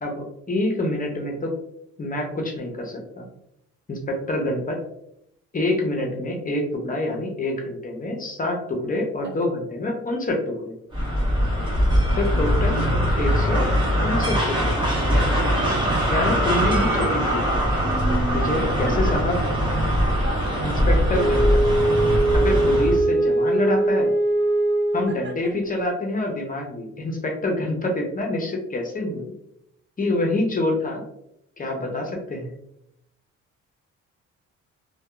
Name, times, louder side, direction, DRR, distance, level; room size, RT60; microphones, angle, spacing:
voice 1, 0.0-1.5 2.0-3.3 3.9-4.8 5.5-10.7 12.1-12.8 13.2-13.7 14.0-14.7 16.1-17.6 18.3-19.4 20.6-21.6 22.3-24.1 24.9-29.3 30.0-31.0 31.6-32.5, left 1 dB, 30° left, 1 dB, 0.6 m, -26 dB
sound 1, 10.9-23.0, equal, 15° right, 1.1 m, -21 dB
voice 2, 18.7-19.2 20.2-20.7 25.1-25.5, right 1 dB, 40° right, 2 dB, 0.5 m, -36 dB
Wind instrument woodwind instrument, 21.1-25.3, right 2 dB, 65° right, 0.9 m, -21 dB
2.7 x 2.2 x 2.2 m, 0.77 s
cardioid pair, 90°, 30 cm